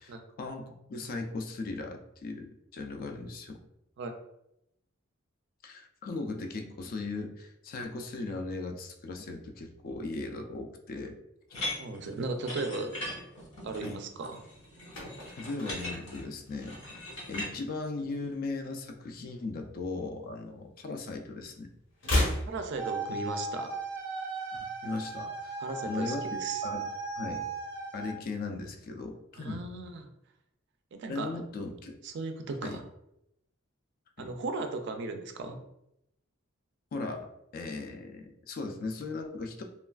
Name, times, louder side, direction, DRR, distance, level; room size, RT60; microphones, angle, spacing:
voice 1, 0.0-3.6 5.6-11.2 13.8-14.0 15.3-16.8 17.3-21.7 24.8-25.6 25.8-26.2 26.6-26.9 27.2-27.4 27.9-29.7 31.1-32.0 32.6-32.8 34.2-34.3 36.9-39.6, left 3 dB, 45° left, 4 dB, 0.3 m, -38 dB
sound 1, 11.5-17.5, left 1 dB, 80° left, 1.1 m, -40 dB
voice 2, 11.8-12.9 13.6-14.4 22.5-23.7 25.6-26.7 29.3-30.1 30.9-31.3 32.0-32.8 34.2-35.6, right 3 dB, 60° right, 6 dB, 0.4 m, -36 dB
sound 2, 14.6-17.2 17.5-17.8 18.1-19.5 19.8-21.2 21.4-23.5 23.8-23.9, left 1 dB, 65° left, 0.8 m, -35 dB
sound 3, 22.8-28.1, right 4 dB, 20° right, 0.6 m, -37 dB
3.1 x 2.3 x 2.2 m, 0.81 s
head